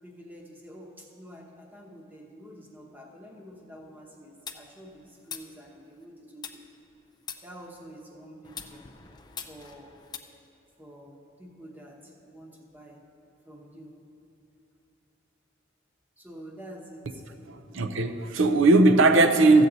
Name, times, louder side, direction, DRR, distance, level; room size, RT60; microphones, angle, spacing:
voice 1, 0.0-6.6 7.4-8.9 9.5-10.1 10.8-13.0 13.4-13.9 16.2-17.7, equal, 10° right, 1.0 m, -48 dB
sound 1, 4.5-6.0 6.4-8.0 8.4-10.2, left 7 dB, 20° left, 0.4 m, -43 dB
voice 2, 17.5-19.6, right 2 dB, 70° right, 0.6 m, -19 dB
14.0 x 8.1 x 4.0 m
head